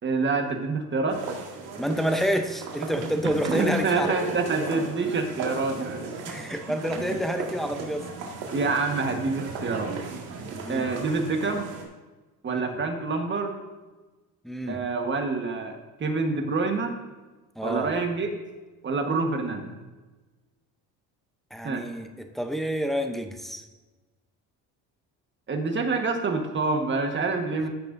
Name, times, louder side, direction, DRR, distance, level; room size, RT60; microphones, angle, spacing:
voice 1, 0.0-1.2 3.2-6.1 6.5-6.6 7.0-7.2 8.5-10.0 10.7-11.7 12.4-13.5 14.7-17.0 17.6-18.3 18.8-19.7 21.6-21.8 25.5-27.7, right 3 dB, 30° right, 4 dB, 1.3 m, -27 dB
sound 1, 1.1-11.8, right 4 dB, 70° right, 1.9 m, -36 dB
voice 2, 1.8-4.2 6.3-8.1 10.5-10.9 12.5-12.6 14.4-14.8 17.6-17.9 21.5-23.6, equal, ahead, 5 dB, 0.7 m, -29 dB
14.5 x 6.6 x 2.6 m, 1.2 s
cardioid pair, 115°, 40 cm